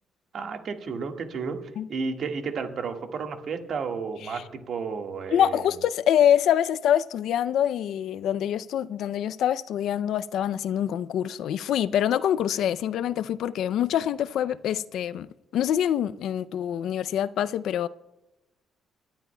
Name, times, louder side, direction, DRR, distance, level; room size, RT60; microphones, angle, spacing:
voice 1, 0.3-1.6 1.9-5.6, right 5 dB, 60° right, 1.5 m, -32 dB
voice 2, 5.3-15.3 15.5-17.9, left 10 dB, 75° left, 0.4 m, -25 dB
25.0 x 11.0 x 2.2 m
cardioid pair, 90°, 0 cm